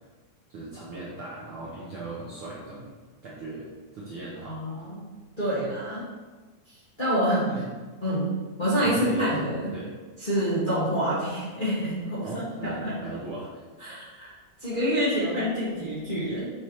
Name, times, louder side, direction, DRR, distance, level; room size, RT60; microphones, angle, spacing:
voice 1, 0.5-2.9 3.2-3.7 3.9-4.6 7.5-7.6 8.8-9.3 9.7-9.9 12.2-13.6, right 2 dB, 85° right, -6 dB, 1.1 m, -38 dB
voice 2, 4.4-5.0 5.4-6.1 6.7-7.5 8.0-9.7 10.2-13.2 13.8-14.3 14.6-16.5, equal, 20° left, -11 dB, 1.3 m, -27 dB
6.9 x 4.6 x 3.2 m, 1.3 s
omnidirectional pair, 3.8 m